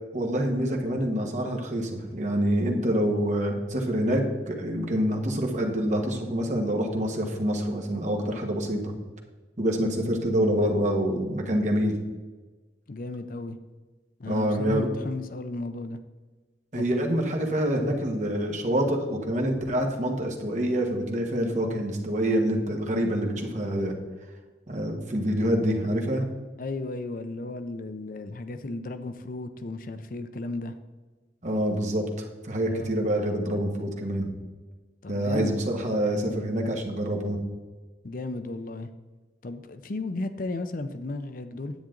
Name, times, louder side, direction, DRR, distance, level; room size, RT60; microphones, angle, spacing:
voice 1, 0.1-8.9 9.6-12.0 14.2-15.0 16.7-24.0 24.7-26.3 31.4-32.0 32.4-34.3 35.1-37.4, equal, 40° right, 2 dB, 1.5 m, -26 dB
voice 2, 12.9-13.6 14.2-16.0 16.7-16.9 26.6-30.8 32.7-32.9 35.0-35.5 38.0-38.9 39.4-41.7, left 2 dB, 50° left, 10 dB, 0.5 m, -34 dB
10.5 x 8.4 x 3.8 m, 1.3 s
head